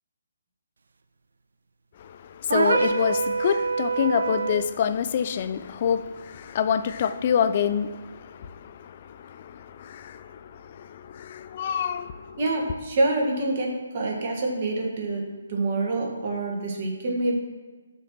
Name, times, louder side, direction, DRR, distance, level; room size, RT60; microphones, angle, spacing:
voice 1, 2.0-12.4, left 8 dB, 40° left, 12 dB, 0.3 m, -27 dB
sound 1, 2.5-4.7, right 4 dB, 65° right, 0.4 m, -25 dB
voice 2, 12.4-17.4, right 2 dB, 40° right, 0 dB, 1.2 m, -26 dB
6.5 x 3.0 x 5.7 m, 1.3 s
figure-of-eight pair, 140°, 0 cm